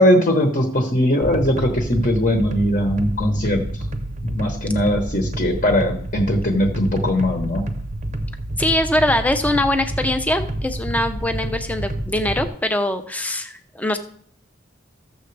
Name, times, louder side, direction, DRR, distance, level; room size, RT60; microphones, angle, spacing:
voice 1, 0.0-3.6 4.2-7.6, left 1 dB, 40° left, 3 dB, 1.1 m, -19 dB
sound 1, 1.2-12.5, right 1 dB, 35° right, 0.7 m, -28 dB
voice 2, 8.6-14.0, left 1 dB, 10° left, 8 dB, 0.6 m, -22 dB
14.5 x 6.9 x 3.3 m, 0.62 s
head